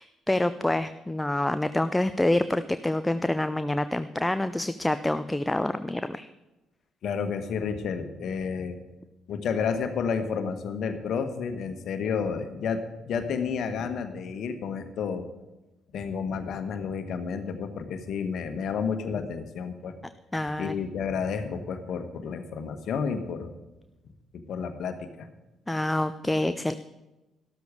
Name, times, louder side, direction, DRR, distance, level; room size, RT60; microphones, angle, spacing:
voice 1, 0.0-6.3 20.3-20.8 25.7-26.7, left 1 dB, 10° left, 12 dB, 0.6 m, -27 dB
voice 2, 7.0-8.7 9.3-15.3 15.9-19.9 20.6-23.5 24.5-25.3, left 6 dB, 55° left, 9 dB, 1.4 m, -31 dB
13.0 x 13.0 x 4.9 m, 1.0 s
figure-of-eight pair, 45°, 0 cm